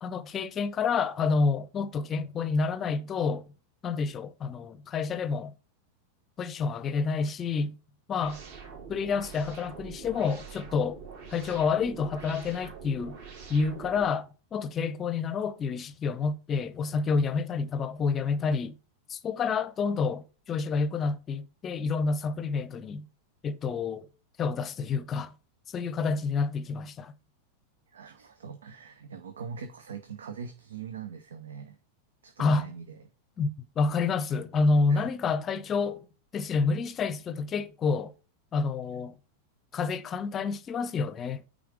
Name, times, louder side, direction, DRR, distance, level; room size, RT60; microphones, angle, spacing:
voice 1, 0.0-3.5 3.8-5.5 6.4-7.8 8.1-8.4 8.9-11.0 11.3-13.2 13.5-18.7 19.1-23.1 23.4-24.1 24.4-25.3 25.7-27.1 32.4-32.7 33.4-36.1 36.3-38.1 38.5-39.2 39.7-41.4, left 4 dB, 25° left, 0.7 m, -28 dB
sound 1, 8.2-14.1, right 5 dB, 50° right, 3.1 m, -45 dB
voice 2, 27.9-31.8 32.2-33.0 34.9-35.1, right 6 dB, 65° right, 0.8 m, -42 dB
9.4 x 3.8 x 4.9 m
figure-of-eight pair, 90°, 0 cm